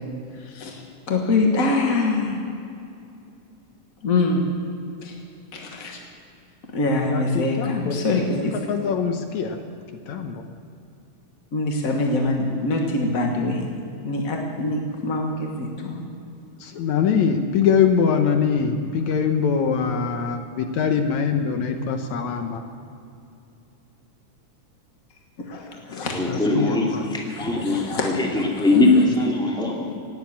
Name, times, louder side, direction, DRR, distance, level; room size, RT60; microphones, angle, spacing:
voice 1, 0.4-0.8 1.1-2.4 4.0-4.5 5.0-5.2 5.5-6.0 6.7-8.5 11.5-13.7 14.0-16.0 25.4-26.1 26.9-27.0 27.3-28.1 28.6-28.8, left 2 dB, 45° left, 1 dB, 1.0 m, -24 dB
voice 2, 7.1-9.6 10.1-10.4 16.6-22.6 26.3-27.0, left 6 dB, 70° left, 6 dB, 2.2 m, -23 dB
voice 3, 26.1-29.9, left 2 dB, ahead, -2 dB, 2.0 m, -21 dB
17.5 x 9.3 x 8.6 m, 2.6 s
omnidirectional pair, 3.5 m